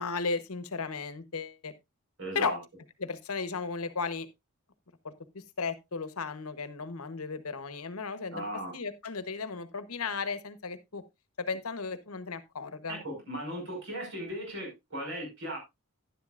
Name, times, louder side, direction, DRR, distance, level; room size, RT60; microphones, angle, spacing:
voice 1, 0.0-1.7 2.3-2.5 3.0-4.3 5.0-5.1 5.6-8.4 8.7-11.0 11.4-13.0, left 4 dB, 75° left, 1.1 m, -35 dB
voice 2, 2.2-2.6 8.3-8.7 12.9-15.6, right 1 dB, 60° right, 5.4 m, -37 dB
11.0 x 11.0 x 2.5 m
head